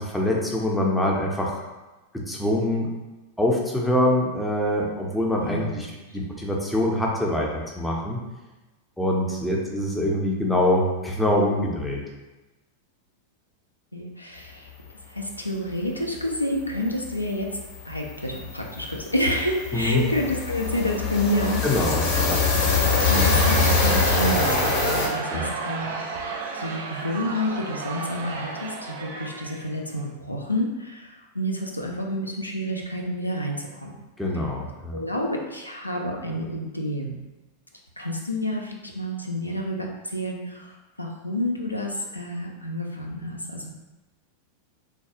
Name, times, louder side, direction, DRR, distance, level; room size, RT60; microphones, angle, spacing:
voice 1, 0.0-1.6 2.1-2.9 3.4-5.9 6.1-8.2 9.0-12.0 19.7-20.0 21.6-22.4 25.3-25.5 34.2-35.0, left 1 dB, 5° left, -3 dB, 0.6 m, -24 dB
voice 2, 5.4-5.7 9.3-9.5 13.9-14.7 15.1-17.6 17.8-22.0 22.6-34.0 34.3-34.4 34.9-37.2 38.0-43.7, equal, 85° left, 0 dB, 0.4 m, -29 dB
sound 1, 16.7-16.8 17.1-17.3 17.5-25.1, left 4 dB, 45° left, 0.6 m, -23 dB
Crowd, 22.8-30.0, right 4 dB, 60° right, 0.4 m, -32 dB
3.2 x 2.3 x 2.8 m, 1.1 s
figure-of-eight pair, 90°, 0 cm